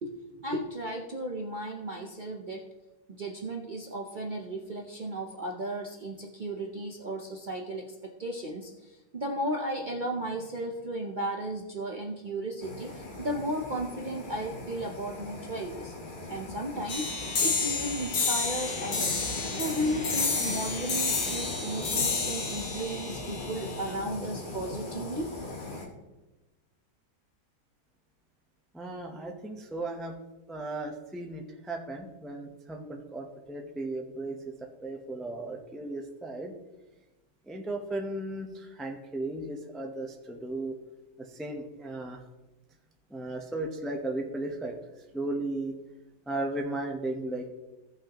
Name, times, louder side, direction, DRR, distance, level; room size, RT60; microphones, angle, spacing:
voice 1, 0.0-2.7 3.1-15.9 16.3-17.1 17.4-25.3, right 1 dB, 50° right, 1 dB, 0.6 m, -35 dB
sound 1, 12.6-25.9, left 2 dB, 35° left, 1.2 m, -39 dB
sound 2, 16.9-23.9, left 4 dB, 55° left, 1.4 m, -31 dB
voice 2, 28.7-30.2 30.5-36.5 37.5-40.7 41.2-42.2 43.1-44.8 45.1-45.7 46.3-47.5, right 2 dB, ahead, 2 dB, 0.3 m, -35 dB
16.5 x 5.7 x 2.9 m, 1.1 s
omnidirectional pair, 1.8 m